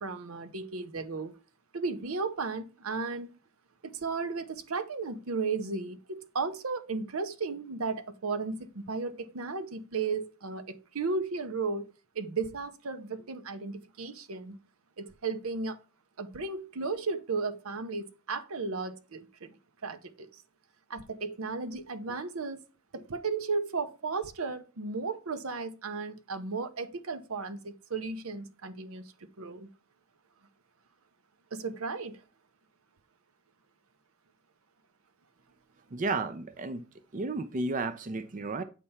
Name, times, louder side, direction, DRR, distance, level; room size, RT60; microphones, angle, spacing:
voice 1, 0.0-1.3 1.7-3.3 3.8-14.6 15.0-15.8 16.2-19.5 19.8-20.4 20.9-22.6 22.9-29.0 29.4-29.7 31.5-32.2, right 4 dB, 80° right, 0.8 m, -35 dB
voice 2, 35.9-36.8 37.1-38.6, right 3 dB, 40° right, 0.4 m, -32 dB
8.2 x 3.4 x 5.6 m
head